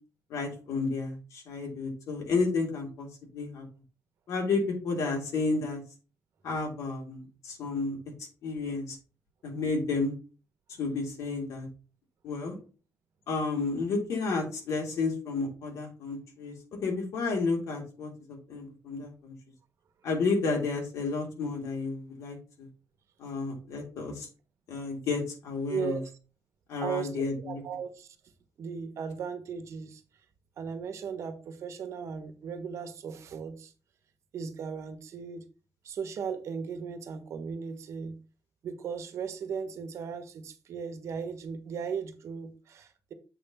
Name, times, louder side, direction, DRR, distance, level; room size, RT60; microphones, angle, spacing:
voice 1, 0.3-3.1 3.3-3.6 4.3-5.8 6.4-8.0 8.4-9.0 9.4-10.1 10.8-11.7 12.2-12.6 13.3-16.5 16.8-19.3 20.0-22.4 23.2-24.3 24.7-26.0 26.7-27.6, left 4 dB, 70° left, 3.0 m, -31 dB
voice 2, 25.7-26.0 26.8-28.1 28.6-30.0 30.6-33.7 34.3-35.4 35.8-38.2 38.6-43.1, right 6 dB, 60° right, 1.3 m, -37 dB
7.8 x 3.5 x 5.5 m
cardioid pair, 110°, 6 cm